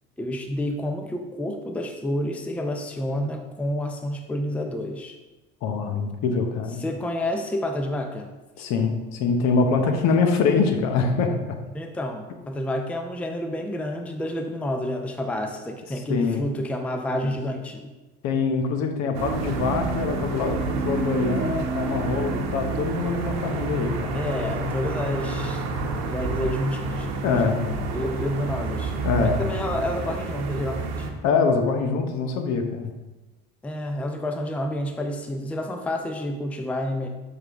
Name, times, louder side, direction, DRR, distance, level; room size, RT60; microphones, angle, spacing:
voice 1, 0.2-5.2 6.8-8.3 11.7-17.9 24.1-25.6 26.1-27.4 27.9-28.9 29.2-31.1 33.6-37.1, left 1 dB, 5° left, 4 dB, 0.5 m, -29 dB
voice 2, 5.6-6.8 8.6-11.3 16.1-16.4 18.2-24.2 27.2-27.8 29.0-29.5 31.2-32.9, left 4 dB, 55° left, 5 dB, 0.9 m, -24 dB
sound 1, 19.1-31.1, right 3 dB, 55° right, 1.0 m, -29 dB
7.4 x 3.7 x 3.6 m, 1.1 s
supercardioid pair, 95°, 32 cm